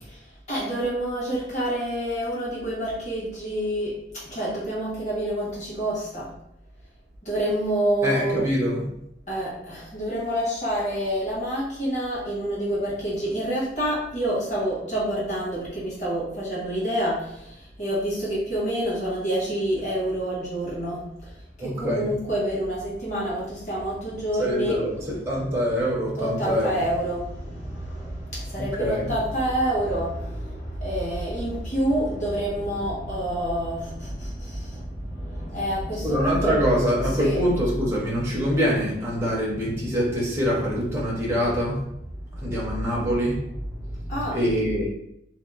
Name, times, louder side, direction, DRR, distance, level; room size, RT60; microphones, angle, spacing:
voice 1, 0.0-3.9 4.2-6.3 7.2-8.4 9.3-24.8 26.2-36.5 37.2-37.4 42.3-42.6 43.7-44.4, right 1 dB, 40° left, -7 dB, 1.3 m, -28 dB
voice 2, 8.0-8.8 21.6-22.1 24.4-26.8 28.6-29.1 36.0-41.8 42.4-43.4 44.3-44.8, equal, 15° right, -4 dB, 0.6 m, -24 dB
2.8 x 2.0 x 3.6 m, 0.78 s
head